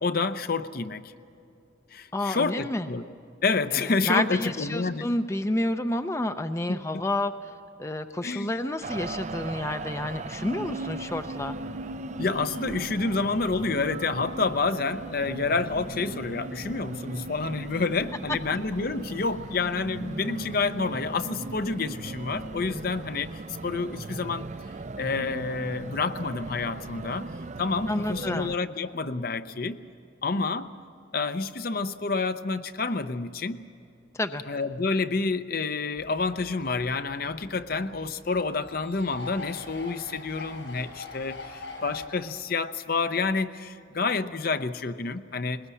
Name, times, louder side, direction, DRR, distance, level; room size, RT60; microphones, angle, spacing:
voice 1, 0.0-1.0 1.9-3.0 3.4-5.1 6.7-7.0 8.2-8.5 12.2-23.3 23.6-24.5 25.0-27.3 27.6-29.8 30.2-30.7 31.1-33.6 34.5-45.6, left 4 dB, 50° left, 10 dB, 0.7 m, -28 dB
voice 2, 2.1-2.9 3.8-7.5 7.8-11.5 27.9-28.5 34.1-34.4, left 1 dB, 15° left, 9 dB, 0.5 m, -29 dB
sound 1, 8.8-28.6, right 3 dB, 40° right, 0.5 m, -38 dB
sound 2, 36.0-42.1, left 3 dB, 75° left, 6.1 m, -44 dB
21.0 x 20.5 x 8.3 m, 2.6 s
head